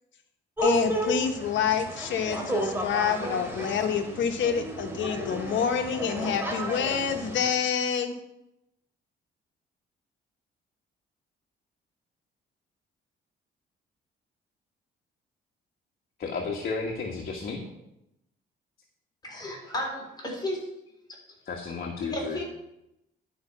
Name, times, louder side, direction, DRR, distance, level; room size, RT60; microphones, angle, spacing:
voice 1, 0.6-8.1, left 7 dB, 70° left, 7 dB, 1.2 m, -27 dB
sound 1, 0.6-7.5, equal, 10° right, 2.4 m, -32 dB
voice 2, 16.2-17.6 21.4-22.4, left 4 dB, 50° left, 0 dB, 1.5 m, -32 dB
voice 3, 19.2-20.7 22.0-22.4, left 1 dB, 20° left, -2 dB, 3.6 m, -33 dB
11.0 x 5.2 x 5.8 m, 0.86 s
cardioid pair, 90°, 20 cm